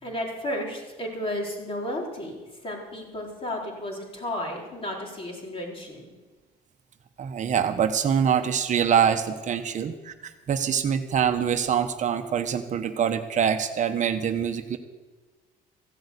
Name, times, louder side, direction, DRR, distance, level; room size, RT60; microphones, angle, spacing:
voice 1, 0.0-6.1, left 1 dB, 35° left, -1 dB, 4.3 m, -33 dB
voice 2, 7.2-10.1 10.5-14.8, right 8 dB, 45° right, 7 dB, 1.0 m, -24 dB
15.5 x 7.9 x 8.4 m, 1.3 s
cardioid pair, 110°, 17 cm